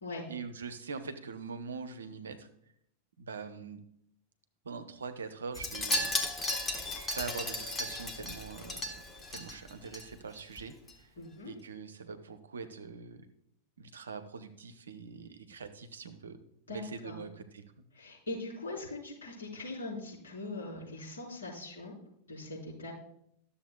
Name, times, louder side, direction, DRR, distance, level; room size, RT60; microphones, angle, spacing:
voice 1, 0.3-2.5 3.2-3.8 4.6-6.1 7.2-8.8 9.3-11.1 11.4-13.3 13.8-16.4 16.7-17.6, right 5 dB, 70° right, 9 dB, 0.7 m, -43 dB
Wind chime, 5.5-10.0 10.3-10.6 10.9-11.0, left 1 dB, 15° left, 1.1 m, -35 dB
voice 2, 11.2-11.5 16.7-17.2 17.9-22.0 22.3-22.9, left 2 dB, 65° left, -5 dB, 3.7 m, -41 dB
12.5 x 7.0 x 2.2 m, 0.72 s
figure-of-eight pair, 90°, 0 cm